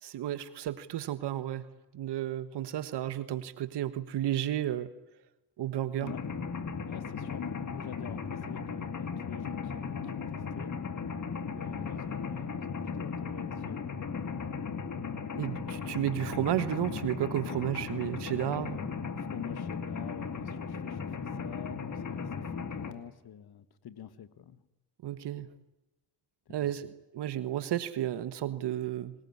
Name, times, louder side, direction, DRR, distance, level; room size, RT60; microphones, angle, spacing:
voice 1, 0.0-1.6 1.9-4.9 5.6-6.1 15.3-18.8 25.0-25.5 26.5-29.1, right 12 dB, 80° right, 12 dB, 1.5 m, -32 dB
Mechanisms, 6.1-22.9, left 5 dB, 45° left, 2.5 m, -36 dB
voice 2, 6.8-10.7 11.5-14.5 19.2-24.6 26.5-26.7, left 9 dB, 65° left, 13 dB, 1.7 m, -46 dB
26.5 x 20.0 x 9.8 m, 0.96 s
cardioid pair, 80°, 41 cm